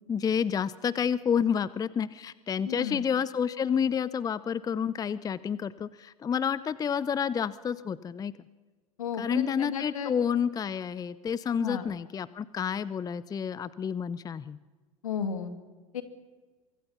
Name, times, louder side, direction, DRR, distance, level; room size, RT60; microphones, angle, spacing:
voice 1, 0.0-8.3 9.2-14.6, left 7 dB, 20° left, 18 dB, 0.6 m, -29 dB
voice 2, 2.6-3.0 9.0-10.1 11.6-11.8 15.0-15.5 15.9-16.0, left 7 dB, 75° left, 9 dB, 2.3 m, -33 dB
24.5 x 24.0 x 5.8 m, 1.3 s
figure-of-eight pair, 80°, 18 cm